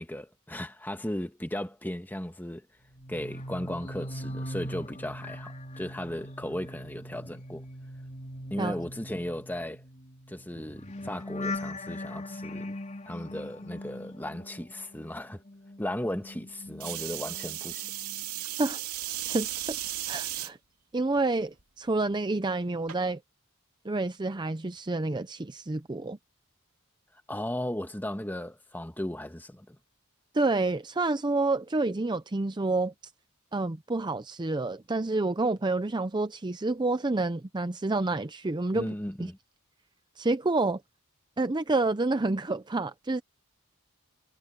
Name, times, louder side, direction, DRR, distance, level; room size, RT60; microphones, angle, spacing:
voice 1, 0.0-2.6 3.1-7.6 8.5-9.8 10.3-12.8 13.1-15.4 15.8-17.9 27.3-29.8 38.7-39.4, left 1 dB, 10° left, 1.4 m, -36 dB
sound 1, 2.9-15.2 15.5-17.5 17.8-18.2, left 1 dB, 35° left, 3.9 m, -40 dB
sound 2, 16.8-20.5 21.2-21.6 22.9-23.0, right 14 dB, 90° right, 3.1 m, -35 dB
voice 2, 19.2-19.8 20.1-20.6 20.9-23.2 23.8-26.2 30.3-32.9 33.5-38.9 39.2-39.3 40.2-40.8 41.4-43.2, right 2 dB, 20° right, 0.5 m, -28 dB
head